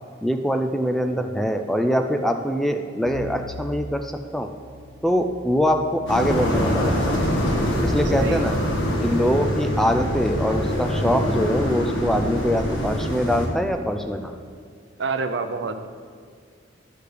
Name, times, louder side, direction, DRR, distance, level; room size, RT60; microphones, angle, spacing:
voice 1, 0.2-4.5 5.0-7.2 7.8-8.5 9.0-14.3, equal, ahead, 6 dB, 0.3 m, -23 dB
sound 1, 3.0-10.4, left 1 dB, 80° right, 1.1 m, -37 dB
sound 2, 6.1-13.5, equal, 80° left, 1.6 m, -24 dB
voice 2, 8.2-8.6 15.0-15.9, right 4 dB, 65° right, 9 dB, 0.5 m, -27 dB
11.5 x 6.5 x 3.3 m, 2.1 s
head